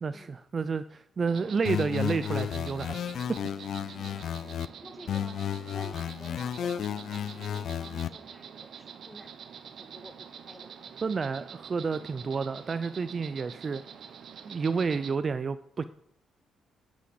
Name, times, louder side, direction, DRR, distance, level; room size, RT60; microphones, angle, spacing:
voice 1, 0.0-3.0 11.0-13.8 14.5-15.8, right 5 dB, 40° right, 12 dB, 0.4 m, -30 dB
Insect, 1.3-15.1, right 7 dB, 60° right, 0.8 m, -46 dB
sound 1, 1.6-4.7 5.1-8.1, left 9 dB, 65° left, 0.4 m, -33 dB
voice 2, 3.8-4.3 4.7-5.4 5.7-9.5 9.8-10.9, equal, 5° left, 5 dB, 1.6 m, -50 dB
9.7 x 6.1 x 7.7 m, 0.70 s
cardioid pair, 90°, 0 cm